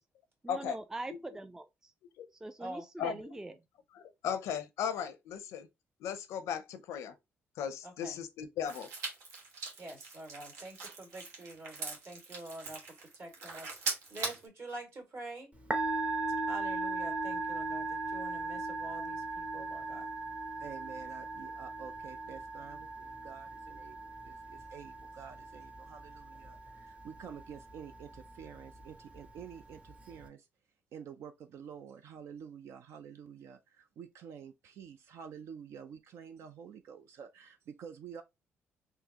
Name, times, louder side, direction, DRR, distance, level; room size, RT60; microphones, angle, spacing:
voice 1, 0.4-1.9 2.3-3.6, right 2 dB, 10° right, 0.3 m, -43 dB
voice 2, 3.9-5.7 6.0-7.2 7.6-8.9, left 8 dB, 85° left, 0.6 m, -36 dB
voice 3, 7.8-8.2 9.8-12.8 13.1-15.5 16.5-20.1, right 2 dB, 55° right, 2.0 m, -46 dB
sound 1, 8.6-14.5, right 3 dB, 90° right, 1.1 m, -41 dB
Musical instrument, 15.5-30.3, right 2 dB, 25° right, 0.7 m, -38 dB
voice 4, 20.6-30.5 30.9-38.2, right 7 dB, 75° right, 0.5 m, -49 dB
3.8 x 2.7 x 2.8 m
cardioid pair, 80°, 5 cm